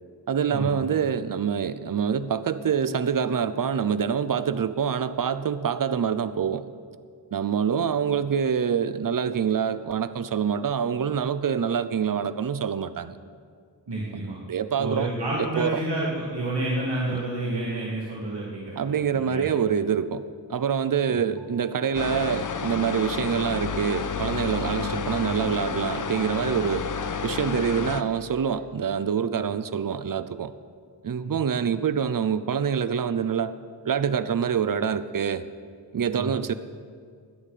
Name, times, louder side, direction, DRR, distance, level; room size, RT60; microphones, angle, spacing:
voice 1, 0.3-6.6 7.3-13.2 14.1-15.1 15.4-15.8 17.1-17.2 18.8-20.2 20.5-26.9 27.2-30.5 31.0-33.5 33.8-35.4 35.9-36.5, right 7 dB, 50° right, 13 dB, 0.6 m, -26 dB
voice 2, 13.9-14.4 14.8-19.4 24.8-25.0 31.2-31.3 36.1-36.3, right 2 dB, 65° right, -6 dB, 2.4 m, -29 dB
sound 1, 21.4-23.9 24.5-27.2, equal, ahead, 4.0 m, -48 dB
sound 2, 21.9-28.0, left 6 dB, 45° left, 0.7 m, -30 dB
17.5 x 11.0 x 5.0 m, 2.1 s
wide cardioid pair, 90°, 44 cm